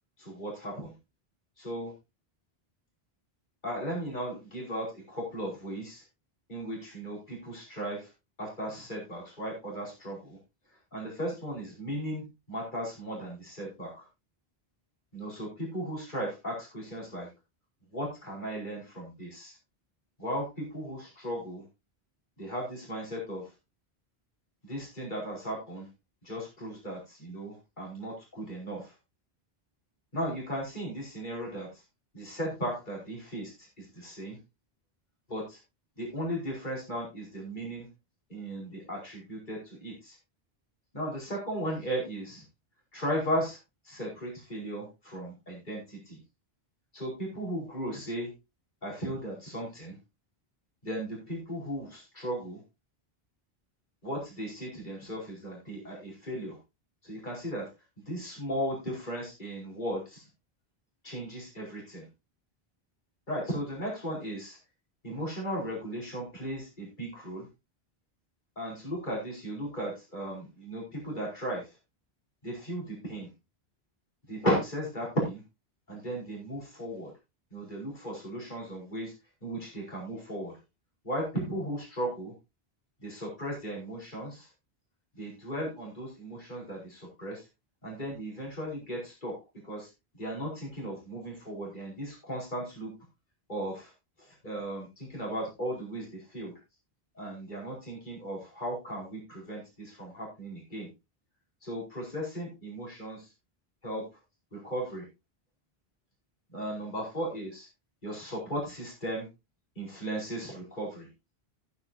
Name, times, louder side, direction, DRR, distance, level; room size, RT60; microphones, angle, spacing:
voice 1, 0.2-0.9 1.6-1.9 3.6-6.0 6.5-8.1 8.4-10.4 10.9-14.1 15.1-17.3 17.9-19.6 20.2-21.6 22.4-23.4 24.6-25.9 26.2-28.9 30.1-31.7 32.1-34.4 35.3-35.6 36.0-37.9 38.3-40.1 40.9-42.4 42.9-43.6 43.8-46.2 46.9-48.3 48.8-50.0 50.8-52.6 54.0-56.6 57.0-57.6 58.1-60.3 61.0-62.1 63.3-64.6 65.0-67.5 68.5-71.7 72.4-73.3 74.3-75.4 75.9-77.1 77.5-79.1 79.4-80.5 81.0-82.3 83.0-84.5 85.1-87.4 87.8-89.3 89.7-89.9 90.2-92.9 93.5-93.9 94.2-96.5 97.1-100.9 101.6-103.3 103.8-104.0 104.5-105.1 106.5-107.7 108.0-109.3 109.7-111.1, equal, 50° left, -3 dB, 5.1 m, -36 dB
14.5 x 8.5 x 2.8 m, 0.25 s
omnidirectional pair, 1.1 m